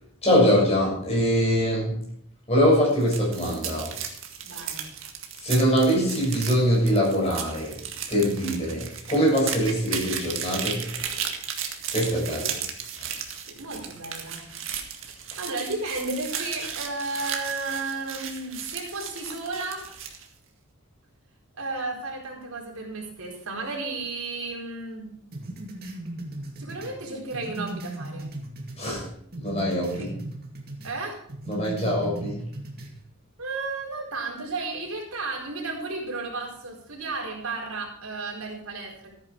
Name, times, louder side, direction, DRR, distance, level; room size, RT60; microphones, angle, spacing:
voice 1, 0.2-2.0 2.5-4.0 4.5-4.6 5.4-11.3 11.9-12.6 13.0-13.1 28.8-29.1 29.4-30.1 31.4-32.4, equal, 30° left, -3 dB, 6.7 m, -23 dB
sound 1, 2.9-20.3, right 8 dB, 65° right, 1.9 m, -35 dB
voice 2, 4.4-4.9 13.5-14.5 15.4-19.8 21.6-25.1 26.6-28.3 29.9-30.1 30.8-31.2 33.4-39.1, right 3 dB, 85° right, -1 dB, 4.4 m, -33 dB
sound 2, 25.3-29.0 29.3-31.0 31.3-32.9, right 1 dB, 45° right, 2.3 m, -37 dB
14.0 x 9.5 x 4.8 m, 0.66 s
head